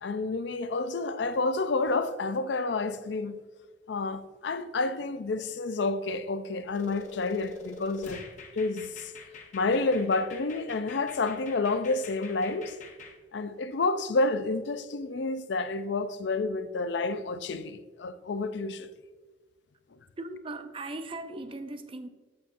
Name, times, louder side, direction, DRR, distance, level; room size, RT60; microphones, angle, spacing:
voice 1, 0.0-3.4 3.9-8.2 8.5-9.1 9.5-12.8 13.3-18.9, left 3 dB, 70° left, 0.5 m, -29 dB
sound 1, 6.7-13.1, left 3 dB, 45° left, 1.0 m, -46 dB
voice 2, 20.2-22.1, right 2 dB, 30° right, 0.5 m, -38 dB
8.7 x 7.0 x 2.6 m
head